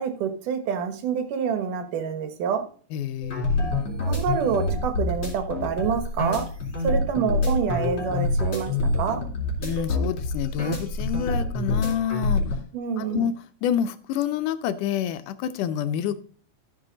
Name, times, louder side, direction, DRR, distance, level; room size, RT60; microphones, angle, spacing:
voice 1, 0.0-2.6 4.0-6.4 6.8-9.2 12.7-13.3, right 7 dB, 85° right, 8 dB, 2.8 m, -27 dB
voice 2, 2.9-3.9 9.6-12.4 13.0-13.3 13.6-16.2, left 9 dB, 85° left, 11 dB, 2.3 m, -28 dB
sound 1, 3.2-12.5, left 2 dB, 40° left, 4.2 m, -26 dB
13.5 x 5.8 x 3.9 m, 0.42 s
omnidirectional pair, 3.6 m